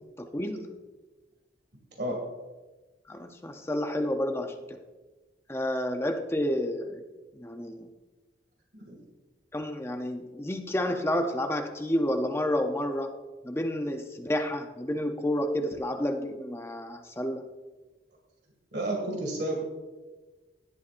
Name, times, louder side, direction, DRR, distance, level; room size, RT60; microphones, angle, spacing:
voice 1, 0.2-0.7 3.1-4.8 5.5-7.0 7.4-7.9 9.5-13.1 13.4-17.5, left 1 dB, 15° left, 5 dB, 0.6 m, -30 dB
voice 2, 18.7-19.6, right 1 dB, 65° right, 0 dB, 2.3 m, -31 dB
17.5 x 11.5 x 2.5 m, 1.2 s
head